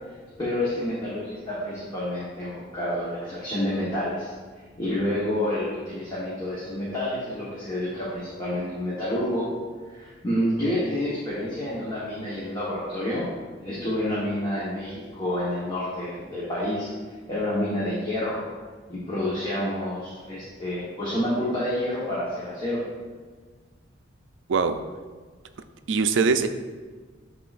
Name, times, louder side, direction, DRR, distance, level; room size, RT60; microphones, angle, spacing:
voice 1, 0.4-9.5 9.9-13.2 13.6-18.4 18.9-22.8, left 1 dB, 25° left, -9 dB, 1.2 m, -29 dB
voice 2, 24.5-24.8 25.9-26.5, right 5 dB, 75° right, 9 dB, 0.4 m, -22 dB
10.0 x 3.8 x 2.5 m, 1.5 s
head